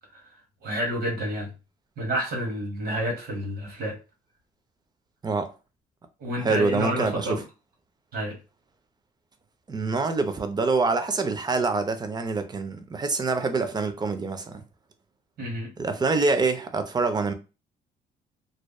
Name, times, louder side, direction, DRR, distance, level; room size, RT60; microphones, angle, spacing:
voice 1, 0.6-1.5 2.0-3.9 6.2-7.4 8.1-8.4 15.4-15.7, equal, 70° right, 1.4 m, -29 dB
voice 2, 6.4-7.4 9.7-14.6 15.8-17.3, right 3 dB, 25° right, 0.5 m, -25 dB
2.6 x 2.2 x 2.2 m
supercardioid pair, 75°, 16 cm